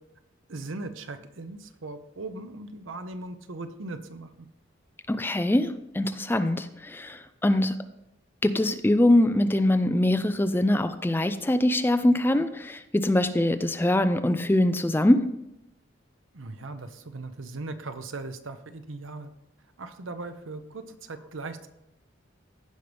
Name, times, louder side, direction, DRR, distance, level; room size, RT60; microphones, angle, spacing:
voice 1, 0.5-4.5 16.3-19.3 19.8-21.7, right 2 dB, 85° right, 9 dB, 0.8 m, -39 dB
voice 2, 5.1-7.8 8.4-15.3, left 1 dB, 10° left, 10 dB, 0.4 m, -23 dB
15.5 x 5.3 x 3.4 m, 0.85 s
head